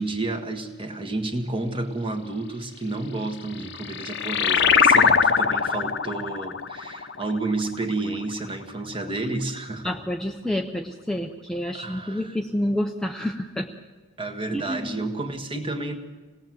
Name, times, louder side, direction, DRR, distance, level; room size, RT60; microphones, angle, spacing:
voice 1, 0.0-10.0 11.7-12.4 14.2-16.0, right 2 dB, 25° right, 4 dB, 1.8 m, -30 dB
sound 1, 3.4-8.5, left 6 dB, 50° left, 1.0 m, -22 dB
voice 2, 9.8-13.7 14.5-15.0, left 1 dB, 5° left, 2 dB, 0.8 m, -28 dB
26.5 x 18.5 x 7.7 m, 1.3 s
head